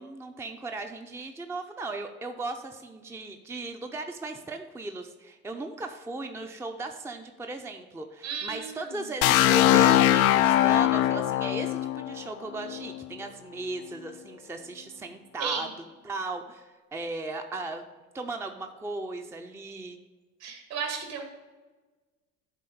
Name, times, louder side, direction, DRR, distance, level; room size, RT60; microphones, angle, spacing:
voice 1, 0.0-15.7 16.0-17.8 18.1-20.0, right 3 dB, 5° right, 5 dB, 0.6 m, -37 dB
voice 2, 8.2-9.1 15.4-15.7 20.4-21.2, right 6 dB, 65° right, 3 dB, 2.2 m, -34 dB
sound 1, 9.2-13.0, left 13 dB, 75° left, 0.6 m, -21 dB
11.0 x 3.8 x 5.1 m, 1.3 s
hypercardioid pair, 70°, 43 cm